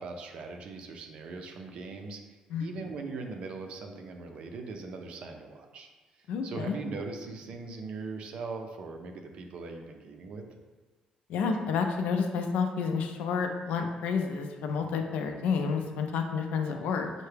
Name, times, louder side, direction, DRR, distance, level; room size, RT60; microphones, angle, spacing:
voice 1, 0.0-2.2 2.6-5.9 6.4-10.4, right 4 dB, 55° right, 4 dB, 0.4 m, -40 dB
voice 2, 6.3-6.7 11.3-17.1, left 5 dB, 85° left, 5 dB, 0.4 m, -30 dB
5.6 x 2.1 x 3.3 m, 1.3 s
cardioid pair, 175°, 2 cm